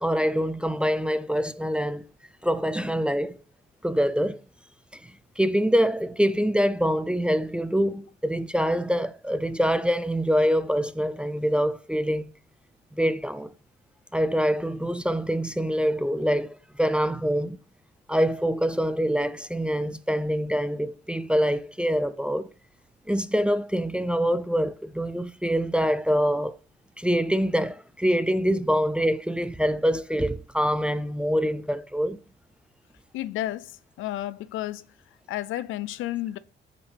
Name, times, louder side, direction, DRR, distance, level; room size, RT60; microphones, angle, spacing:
voice 1, 0.0-2.0 2.4-3.4 3.8-4.4 4.9-5.0 5.4-12.3 12.9-13.5 14.1-17.6 18.1-22.5 23.1-26.6 27.0-32.2, equal, 5° right, 0.3 m, -25 dB
voice 2, 33.1-34.9 35.3-36.4, left 14 dB, 80° left, 0.4 m, -32 dB
5.4 x 5.1 x 3.3 m
cardioid pair, 90°, 20 cm